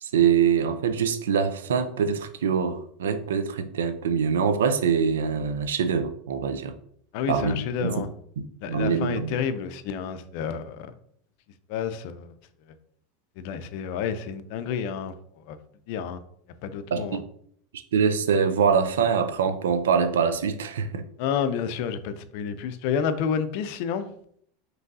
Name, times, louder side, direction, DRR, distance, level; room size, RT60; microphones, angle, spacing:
voice 1, 0.0-6.7 7.3-8.0 8.4-9.3 16.9-17.2 17.7-21.0, right 6 dB, 85° right, 0.4 m, -24 dB
voice 2, 7.1-8.1 8.6-10.9 11.7-12.3 13.4-15.1 15.5-15.6 15.9-16.2 16.6-17.2 21.2-24.1, left 7 dB, 65° left, 0.5 m, -29 dB
5.2 x 3.1 x 2.6 m
hypercardioid pair, 95°, 0 cm